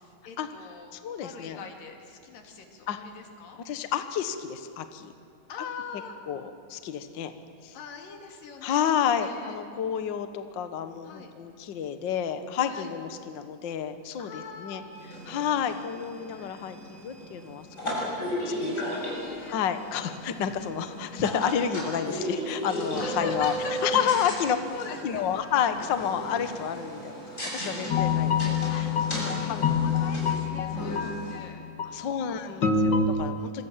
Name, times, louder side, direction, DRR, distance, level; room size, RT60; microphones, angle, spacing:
voice 1, 0.0-0.9 1.2-3.6 5.5-6.2 7.7-9.6 11.0-11.3 12.6-12.9 14.2-14.9 18.3-19.6 23.0-23.8 24.3-24.4 24.7-25.2 28.7-32.6, left 5 dB, 85° left, 3 dB, 3.9 m, -43 dB
voice 2, 0.9-1.6 2.9-3.0 3.6-5.1 6.3-7.3 7.6-7.8 8.6-14.8 15.2-17.7 18.0-18.1 18.4-19.0 19.5-23.5 23.8-24.6 25.0-28.9 29.1-29.6 31.9-33.6, left 8 dB, 65° left, 9 dB, 1.1 m, -30 dB
sound 1, 14.9-31.4, equal, 20° left, 6.9 m, -35 dB
sound 2, 27.9-31.4 31.8-32.0 32.6-33.1, left 6 dB, 45° left, 1.7 m, -26 dB
26.5 x 24.0 x 7.4 m, 2.4 s
omnidirectional pair, 3.8 m